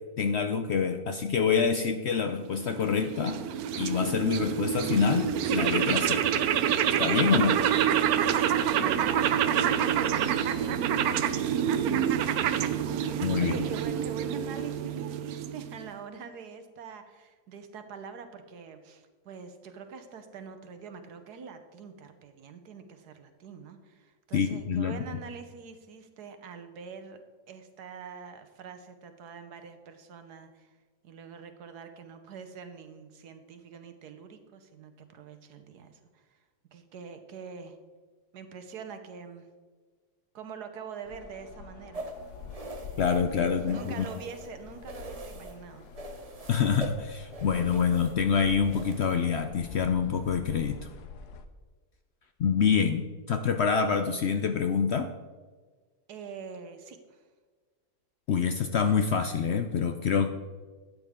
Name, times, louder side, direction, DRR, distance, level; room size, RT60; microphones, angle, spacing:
voice 1, 0.2-3.4 3.8-6.2 7.0-7.6 13.2-13.5 24.3-25.0 43.0-44.1 46.5-50.8 52.4-55.1 58.3-60.3, left 6 dB, 65° left, 7 dB, 0.6 m, -26 dB
sound 1, 2.5-15.9, right 9 dB, 75° right, 1.1 m, -27 dB
voice 2, 8.1-27.2 27.5-30.7 31.0-36.2 36.7-37.8 38.3-39.5 40.3-42.1 43.5-45.9 56.1-57.2, right 5 dB, 90° right, 8 dB, 1.5 m, -45 dB
sound 2, 41.0-51.4, left 4 dB, 85° left, 1.3 m, -46 dB
sound 3, 41.9-44.5 44.8-45.6 45.9-49.4, right 2 dB, 35° right, 0.7 m, -43 dB
12.5 x 8.9 x 3.7 m, 1.4 s
omnidirectional pair, 1.7 m